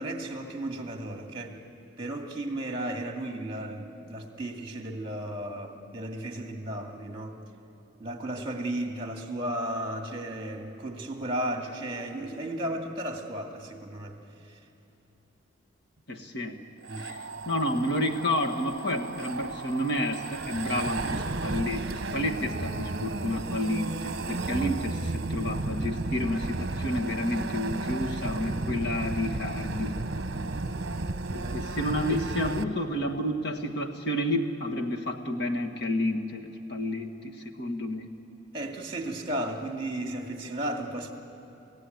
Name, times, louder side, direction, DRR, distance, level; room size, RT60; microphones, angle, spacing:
voice 1, 0.0-1.6 2.0-7.4 8.0-14.2 14.4-14.6 16.9-17.1 30.4-30.7 31.4-31.7 38.5-41.1, right 1 dB, 25° right, 3 dB, 2.2 m, -34 dB
voice 2, 16.1-16.6 17.0-30.0 31.3-38.1, left 1 dB, 55° left, 3 dB, 1.7 m, -30 dB
Phantom Quadcopter takes off, 16.8-32.6, right 2 dB, 50° right, 1.0 m, -34 dB
sound 1, 20.5-21.0 22.4-23.1 24.5-25.1 26.4-27.1, right 1 dB, 5° left, 1.7 m, -38 dB
29.5 x 16.0 x 9.3 m, 2.9 s
head